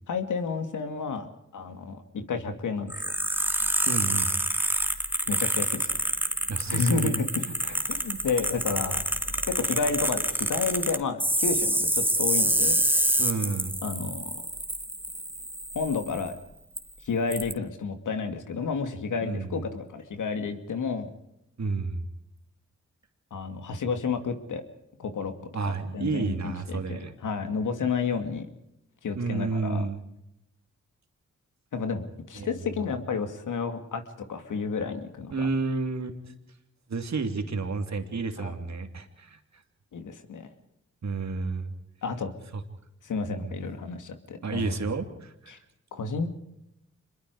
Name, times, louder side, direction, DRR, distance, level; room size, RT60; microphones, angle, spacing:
voice 1, 0.1-3.2 5.3-6.0 6.7-7.3 7.9-9.0 9.5-12.9 13.8-14.3 15.7-16.3 17.0-21.1 23.3-24.6 25.0-25.3 25.6-28.5 29.0-29.9 31.7-34.0 34.3-35.5 38.4-38.5 39.9-40.5 42.0-42.3 43.0-44.8 45.5-45.6 45.9-46.3, left 5 dB, 80° left, 7 dB, 2.6 m, -31 dB
sound 1, 2.9-16.3 16.8-16.9 17.3-17.5, right 1 dB, 5° right, 2.5 m, -27 dB
voice 2, 3.8-4.3 6.5-7.1 7.4-8.2 13.2-13.7 19.2-19.6 21.6-22.0 25.5-27.1 29.1-30.0 32.3-32.5 35.3-36.1 36.9-39.4 41.0-41.7 42.5-42.6 43.3-43.5 44.4-45.5, right 4 dB, 60° right, 6 dB, 3.0 m, -31 dB
26.0 x 22.0 x 4.9 m, 0.83 s
supercardioid pair, 45°, 31 cm